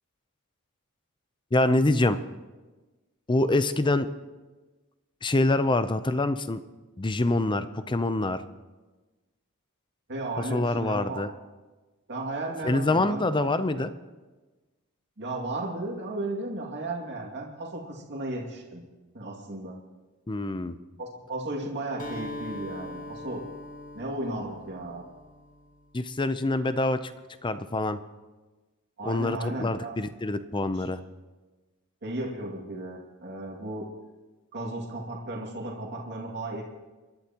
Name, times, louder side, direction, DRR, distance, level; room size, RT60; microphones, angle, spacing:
voice 1, 1.5-2.2 3.3-4.1 5.2-6.6 7.0-8.4 10.4-11.3 12.6-13.9 20.3-20.8 25.9-27.1 27.4-28.0 29.0-31.0, left 2 dB, 20° left, 12 dB, 0.6 m, -25 dB
voice 2, 10.1-11.2 12.1-13.5 15.2-18.8 19.1-19.8 21.0-23.4 23.9-25.0 29.0-29.9 30.7-30.9 32.0-33.9 34.5-36.6, right 2 dB, 55° right, -2 dB, 2.3 m, -35 dB
Acoustic guitar, 22.0-25.9, left 1 dB, 35° left, 1.9 m, -41 dB
30.0 x 11.5 x 3.0 m, 1.2 s
head